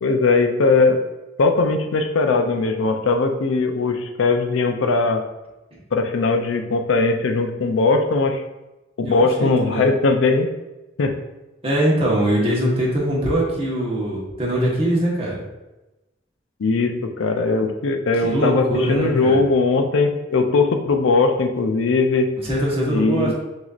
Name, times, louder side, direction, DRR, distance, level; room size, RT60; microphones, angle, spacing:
voice 1, 0.0-1.0 1.4-5.2 5.9-8.4 9.0-10.5 11.0-11.1 16.6-22.3 22.9-23.3, left 3 dB, 90° left, 6 dB, 0.5 m, -19 dB
voice 2, 9.0-9.9 11.6-15.4 18.2-19.4 22.4-23.3, right 1 dB, 30° right, -5 dB, 1.1 m, -22 dB
5.9 x 2.8 x 2.4 m, 1.0 s
head